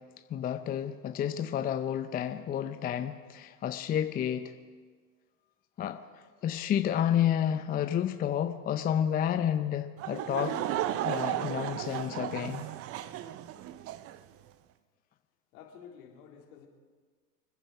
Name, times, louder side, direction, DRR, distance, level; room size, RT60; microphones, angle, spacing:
voice 1, 0.3-4.5 5.8-6.0 6.4-10.6 11.0-12.7, left 9 dB, 20° left, 9 dB, 0.6 m, -30 dB
Laughter / Crowd, 10.0-14.2, right 12 dB, 30° right, 0.6 m, -34 dB
voice 2, 15.5-16.7, left 7 dB, 60° left, 0 dB, 3.6 m, -51 dB
27.5 x 10.5 x 4.8 m, 1.5 s
hypercardioid pair, 95°, 49 cm